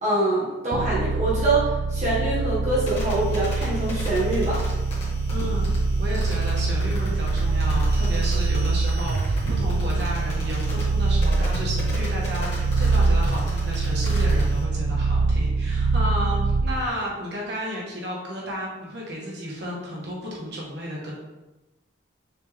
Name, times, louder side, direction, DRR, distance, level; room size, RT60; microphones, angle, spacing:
voice 1, 0.0-4.6, right 2 dB, 35° right, -7 dB, 1.6 m, -24 dB
sound 1, 0.7-16.9, right 3 dB, 90° right, 0.5 m, -24 dB
sound 2, 2.8-14.6, equal, 30° left, 1.9 m, -37 dB
voice 2, 5.3-21.1, equal, 60° right, -4 dB, 1.4 m, -33 dB
6.4 x 4.4 x 3.4 m, 1.1 s
head